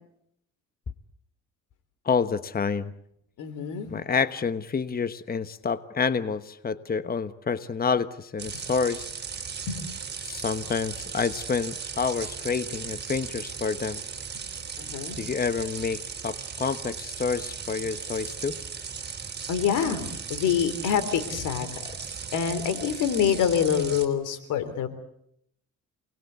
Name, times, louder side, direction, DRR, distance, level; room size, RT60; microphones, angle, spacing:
voice 1, 2.0-2.9 3.9-9.1 10.2-14.0 15.2-18.6, left 5 dB, 30° left, 12 dB, 1.2 m, -28 dB
voice 2, 3.4-3.9 9.7-9.8 14.8-15.2 19.5-20.0 20.3-21.7 22.3-24.9, left 8 dB, 85° left, 11 dB, 3.5 m, -26 dB
sound 1, 8.4-24.1, right 6 dB, 35° right, 4.4 m, -37 dB
28.0 x 20.0 x 8.2 m, 0.74 s
cardioid pair, 90°, 30 cm